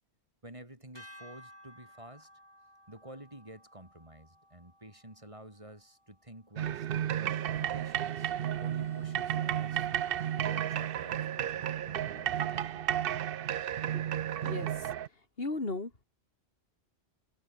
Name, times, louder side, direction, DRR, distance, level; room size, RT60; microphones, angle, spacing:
voice 1, 0.4-2.3 2.9-9.9 10.4-13.0, right 1 dB, 30° right, 4.8 m, -51 dB
sound 1, 0.9-7.3, equal, 20° left, 7.5 m, -57 dB
Bowed string instrument, 6.6-11.9, left 2 dB, 90° left, 4.6 m, -57 dB
sound 2, 6.6-15.1, right 10 dB, 60° right, 0.8 m, -33 dB
voice 2, 15.4-16.0, left 3 dB, 55° left, 3.3 m, -35 dB
omnidirectional pair, 1.1 m